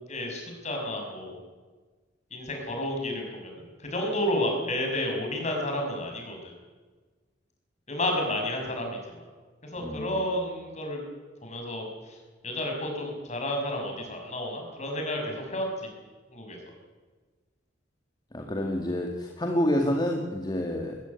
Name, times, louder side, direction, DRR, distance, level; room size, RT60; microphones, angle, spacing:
voice 1, 0.1-1.4 2.3-3.5 3.8-6.5 7.9-9.0 9.6-11.0 11.4-12.2 12.4-15.7 16.3-16.6, left 1 dB, 40° left, 2 dB, 6.4 m, -31 dB
voice 2, 9.8-10.2 18.3-21.0, left 1 dB, 25° left, 2 dB, 2.1 m, -28 dB
22.5 x 15.0 x 9.7 m, 1.4 s
head